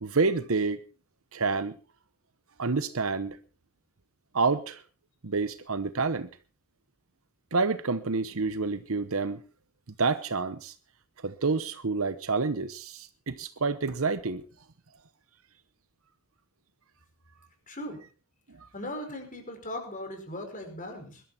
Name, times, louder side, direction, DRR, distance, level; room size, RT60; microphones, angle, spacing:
voice 1, 0.0-0.8 1.3-1.8 2.6-3.4 4.3-4.8 5.2-6.3 7.5-9.4 10.0-10.7 11.2-14.4, right 4 dB, 65° right, 0.9 m, -28 dB
voice 2, 17.7-18.0 18.7-21.2, left 1 dB, 35° left, 5.2 m, -38 dB
21.5 x 12.5 x 4.3 m
head